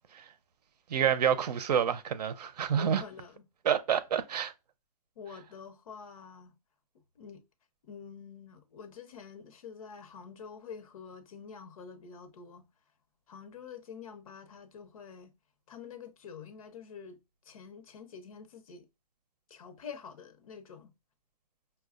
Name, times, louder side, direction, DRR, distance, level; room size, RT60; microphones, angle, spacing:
voice 1, 0.9-3.0 3.6-4.5, right 8 dB, 90° right, 0.6 m, -28 dB
voice 2, 2.7-3.5 5.2-6.6 7.2-7.4 7.8-12.7 13.3-15.3 15.7-18.9 19.5-20.9, left 6 dB, 60° left, 0.9 m, -47 dB
5.6 x 2.3 x 2.4 m
hypercardioid pair, 175°, 20 cm